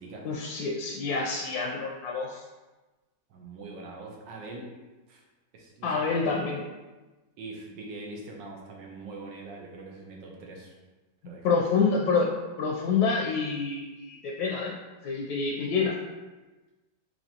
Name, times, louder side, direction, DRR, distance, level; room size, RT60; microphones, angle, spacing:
voice 1, 0.2-2.4 5.8-6.6 11.4-14.7 15.0-15.9, left 4 dB, 70° left, -1 dB, 1.0 m, -27 dB
voice 2, 3.3-4.7 5.1-5.2 5.5-6.4 7.4-10.7 11.2-11.7, right 3 dB, 85° right, 0 dB, 1.4 m, -43 dB
4.9 x 2.9 x 2.8 m, 1.2 s
omnidirectional pair, 1.9 m